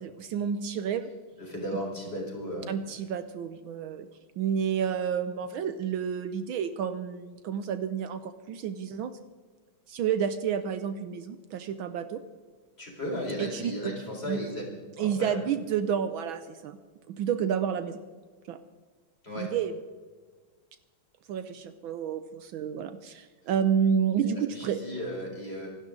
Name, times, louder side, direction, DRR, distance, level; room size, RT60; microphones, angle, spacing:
voice 1, 0.0-1.1 2.7-4.1 4.4-9.1 9.9-12.2 13.4-13.9 14.3-14.4 15.0-16.8 17.1-18.0 18.5-18.6 19.4-19.7 21.3-24.8, right 8 dB, 70° right, 11 dB, 1.5 m, -30 dB
voice 2, 1.4-2.7 12.8-14.7 15.0-15.4 19.2-19.5 24.2-25.7, equal, 25° left, -1 dB, 4.5 m, -35 dB
27.0 x 12.0 x 3.8 m, 1.5 s
omnidirectional pair, 2.4 m